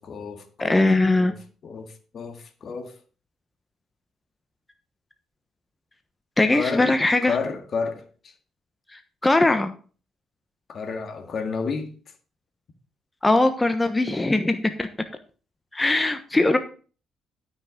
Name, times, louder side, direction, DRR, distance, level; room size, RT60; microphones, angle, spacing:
voice 1, 0.0-0.9 1.1-1.4 1.6-3.0 6.5-6.9 7.2-8.3 10.7-11.9, left 5 dB, 55° left, 1.9 m, -31 dB
voice 2, 0.6-1.3 6.4-7.4 8.9-9.7 13.2-14.9 15.7-16.6, left 2 dB, 15° left, 1.2 m, -20 dB
12.5 x 5.9 x 5.2 m
supercardioid pair, 70°, 0 cm